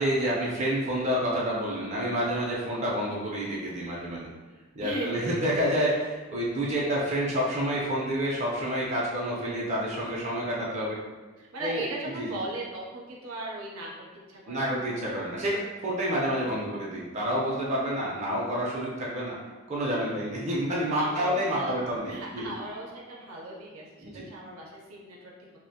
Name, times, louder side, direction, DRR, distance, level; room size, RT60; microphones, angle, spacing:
voice 1, 0.0-4.3 4.7-11.0 11.6-11.9 12.2-12.4 14.5-19.3 19.7-22.4 24.0-24.3, equal, 35° right, -5 dB, 0.5 m, -29 dB
voice 2, 4.8-5.5 11.4-13.9 14.3-14.8 20.9-21.8 22.1-25.3, right 2 dB, 85° right, -3 dB, 0.6 m, -37 dB
2.4 x 2.1 x 2.7 m, 1.3 s
head